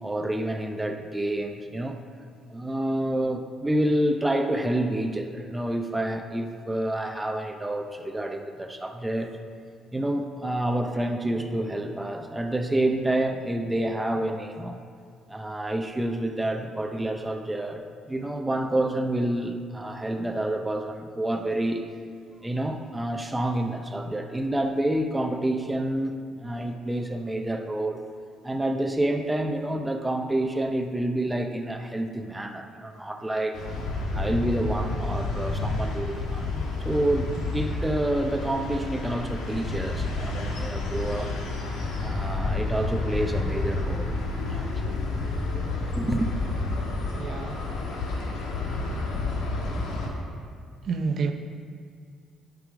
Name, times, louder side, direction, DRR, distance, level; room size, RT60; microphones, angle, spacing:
voice 1, 0.0-2.0 2.5-9.3 9.9-14.8 15.3-21.8 22.4-26.2 26.4-28.0 28.4-33.6 34.1-41.3 42.0-44.2 44.5-45.0 46.0-46.3, right 1 dB, 10° right, 5 dB, 0.5 m, -28 dB
sound 1, 33.5-50.1, left 2 dB, 85° left, 1.3 m, -30 dB
voice 2, 47.2-47.6 50.8-51.3, right 4 dB, 55° right, 6 dB, 0.6 m, -28 dB
10.5 x 4.8 x 4.9 m, 2.1 s
cardioid pair, 100°, 0 cm